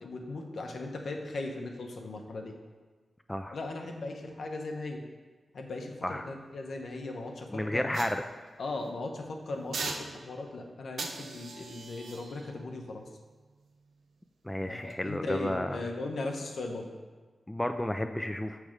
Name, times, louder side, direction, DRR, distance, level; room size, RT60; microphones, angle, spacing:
voice 1, 0.0-2.5 3.5-5.0 5.5-7.9 8.6-13.1 14.6-16.9, left 2 dB, 75° left, 2 dB, 0.7 m, -38 dB
voice 2, 7.5-8.2 14.4-15.8 17.5-18.6, left 1 dB, 15° left, 7 dB, 0.3 m, -32 dB
sound 1, 7.9-8.9 9.7-10.5 11.0-14.2 14.7-14.9, right 4 dB, 80° right, 0.5 m, -42 dB
6.0 x 3.3 x 5.0 m, 1.4 s
cardioid pair, 45°, 0 cm